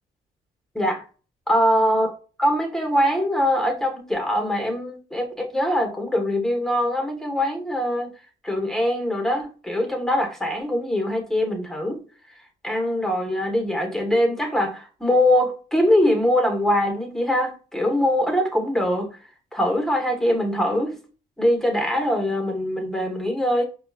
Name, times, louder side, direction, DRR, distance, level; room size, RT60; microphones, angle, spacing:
voice 1, 1.5-2.1 2.4-8.1 8.4-12.0 12.6-19.1 19.5-21.0 21.4-23.6, equal, ahead, 1.1 m, -22 dB
4.9 x 2.3 x 2.4 m
cardioid pair, 90°, 20 cm